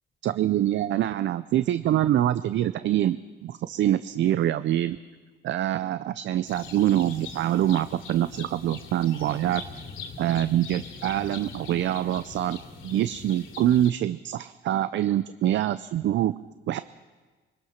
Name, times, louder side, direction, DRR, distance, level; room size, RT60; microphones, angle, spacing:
voice 1, 0.2-5.0 5.4-9.6 10.2-16.3 16.7-16.8, right 12 dB, 70° right, 13 dB, 0.5 m, -25 dB
sound 1, 6.5-13.9, left 5 dB, 85° left, 2.7 m, -42 dB
24.0 x 19.5 x 5.8 m, 1.4 s
cardioid pair, 90°, 20 cm